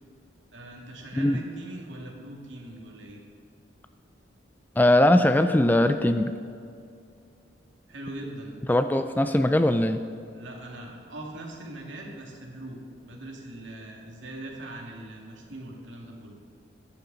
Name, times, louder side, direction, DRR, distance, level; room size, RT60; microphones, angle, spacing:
voice 1, 0.5-3.2 7.9-8.6 10.3-16.4, right 1 dB, 75° right, -1 dB, 2.3 m, -41 dB
voice 2, 4.8-6.3 8.7-10.0, left 1 dB, 10° left, 9 dB, 0.3 m, -20 dB
15.0 x 10.0 x 4.0 m, 2.4 s
head